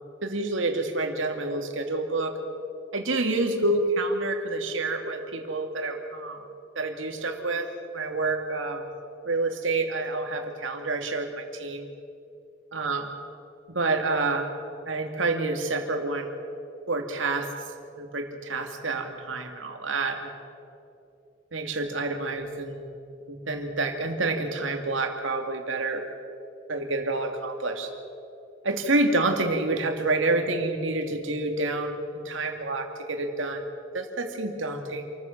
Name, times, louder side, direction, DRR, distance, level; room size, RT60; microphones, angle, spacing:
voice 1, 0.2-2.3 2.9-6.4 6.8-7.7 7.9-8.9 9.2-11.9 12.7-13.1 13.7-14.5 14.9-16.3 16.9-17.5 18.0-20.4 21.5-22.9 23.3-26.0 26.7-27.9 28.6-33.6 33.9-35.1, right 2 dB, 80° right, 4 dB, 2.3 m, -28 dB
27.0 x 14.5 x 7.4 m, 2.6 s
head